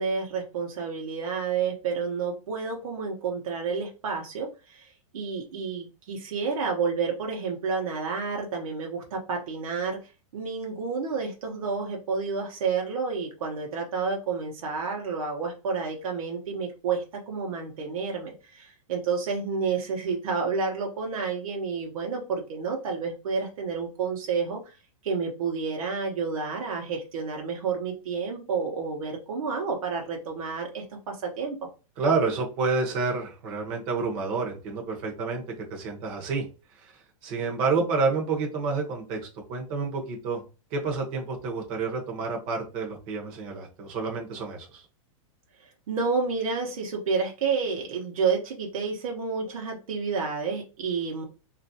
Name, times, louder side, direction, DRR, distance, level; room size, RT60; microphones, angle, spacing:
voice 1, 0.0-10.0 10.3-24.7 25.0-31.6 45.9-51.2, right 5 dB, 80° right, 0 dB, 0.8 m, -30 dB
voice 2, 32.0-35.4 35.7-36.4 36.7-36.9 37.2-39.2 39.5-40.4 40.7-44.8, right 4 dB, 30° right, 1 dB, 0.7 m, -29 dB
3.1 x 2.5 x 2.7 m, 0.32 s
supercardioid pair, 165°, 18 cm